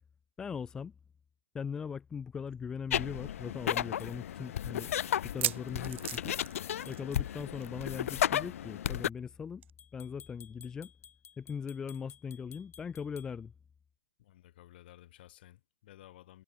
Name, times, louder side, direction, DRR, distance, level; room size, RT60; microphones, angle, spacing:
voice 1, 0.4-0.9 1.5-4.9 5.3-6.4 6.9-9.6 9.9-10.9 11.4-13.5, left 6 dB, 10° left, 0.8 m, -40 dB
sound 1, 2.5-2.6 2.9-3.0 3.6-3.7 5.2-7.3 7.6-7.8 8.1-8.2 9.6-9.7, right 11 dB, 55° right, 0.6 m, -37 dB
sound 2, 2.9-9.1, left 10 dB, 70° left, 0.4 m, -34 dB
sound 3, 4.0-4.1 6.9-7.1 9.8-13.3, left 8 dB, 85° left, 3.5 m, -56 dB
voice 2, 14.2-16.4, left 14 dB, 40° left, 5.0 m, -55 dB
hypercardioid pair, 175°, 8 cm